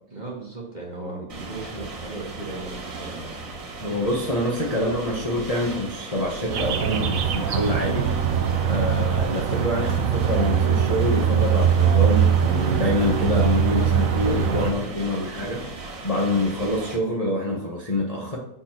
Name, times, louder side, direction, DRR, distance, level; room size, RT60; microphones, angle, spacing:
voice 1, 0.1-3.4, right 2 dB, 20° right, -3 dB, 1.7 m, -36 dB
sound 1, 1.3-17.0, right 3 dB, 40° right, 2.3 m, -37 dB
voice 2, 3.8-8.1 8.7-18.4, left 1 dB, 20° left, -4 dB, 1.1 m, -26 dB
sound 2, 6.5-14.7, right 8 dB, 80° right, 0.7 m, -22 dB
7.5 x 4.4 x 5.9 m, 0.74 s
omnidirectional pair, 2.4 m